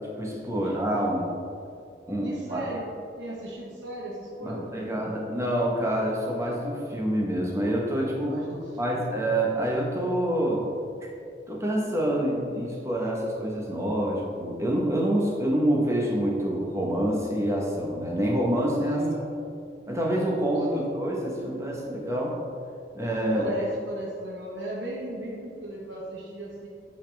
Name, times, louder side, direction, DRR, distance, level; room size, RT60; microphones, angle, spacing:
voice 1, 0.2-1.3 2.1-2.6 4.4-8.4 8.8-10.7 11.5-19.1 19.9-22.4 22.9-23.5, right 1 dB, 15° right, -2 dB, 1.2 m, -27 dB
voice 2, 2.2-5.1 8.3-9.2 19.0-19.2 20.7-20.9 23.3-26.7, right 1 dB, 85° right, -4 dB, 1.3 m, -37 dB
9.5 x 5.2 x 3.5 m, 2.4 s
head